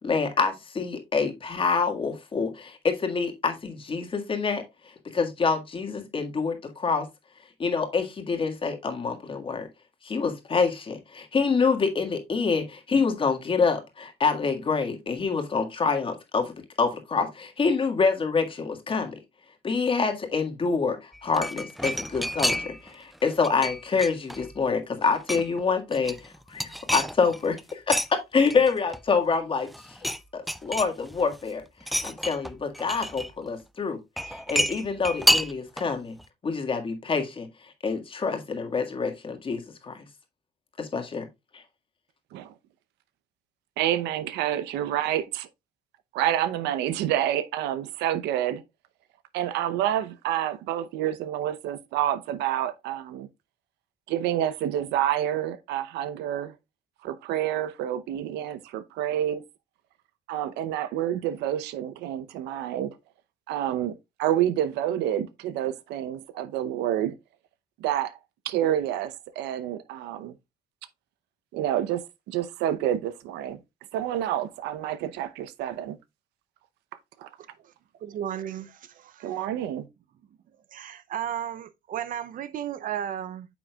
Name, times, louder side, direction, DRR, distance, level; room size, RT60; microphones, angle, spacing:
voice 1, 0.0-4.6 5.1-7.0 7.6-9.7 10.0-19.1 19.6-30.0 30.3-31.6 32.0-34.0 34.3-36.1 36.4-37.5 37.8-40.0 40.8-41.3 41.5-41.6, left 5 dB, 30° left, 1.7 m, -26 dB
sound 1, 21.1-22.9 23.2-24.6 25.0-25.6 25.9-28.1 28.5-29.4 29.6-30.2 30.5-31.4 31.8-33.3 34.2-35.9 36.2-36.3, equal, ahead, 0.3 m, -29 dB
voice 2, 43.8-45.5 46.1-48.6 49.3-53.3 54.1-56.5 57.0-59.4 60.3-62.9 63.5-67.2 67.8-68.2 68.4-70.3 71.5-72.0 72.3-73.6 73.9-76.0 77.2-77.3 79.2-79.9, right 11 dB, 85° right, 0.7 m, -28 dB
voice 3, 78.0-79.4 80.7-83.5, right 10 dB, 55° right, 0.5 m, -34 dB
9.1 x 6.1 x 2.3 m
cardioid pair, 110°, 17 cm